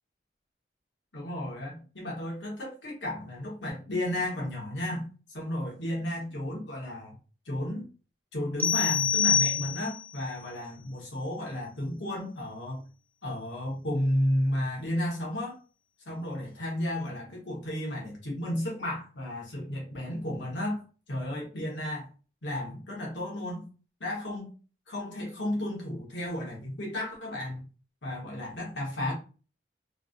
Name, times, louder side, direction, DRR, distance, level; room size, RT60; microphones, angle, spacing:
voice 1, 1.1-5.1 5.3-7.1 7.4-7.8 8.3-12.9 13.2-15.6 16.0-20.8 21.1-22.1 22.4-23.7 24.0-24.5 24.9-27.6 28.0-29.1, left 1 dB, 85° left, -2 dB, 1.3 m, -33 dB
sound 1, 8.6-10.1, left 7 dB, 10° left, 0.4 m, -26 dB
3.2 x 2.5 x 2.6 m, 0.36 s
head